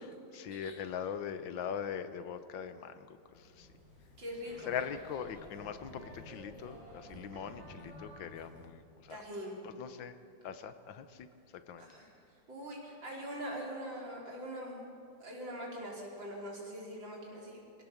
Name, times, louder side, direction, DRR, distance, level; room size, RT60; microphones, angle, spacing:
voice 1, 0.3-3.7 4.7-9.2 9.6-10.2 10.4-11.3 11.5-11.9, left 8 dB, 80° left, 11 dB, 1.7 m, -41 dB
sound 1, 3.3-8.7, equal, 30° right, 8.1 m, -52 dB
voice 2, 4.2-4.7 9.1-9.6 11.8-12.1 12.5-14.9 15.2-17.8, equal, 75° right, -3 dB, 5.0 m, -43 dB
23.0 x 17.0 x 7.1 m, 2.5 s
omnidirectional pair, 2.1 m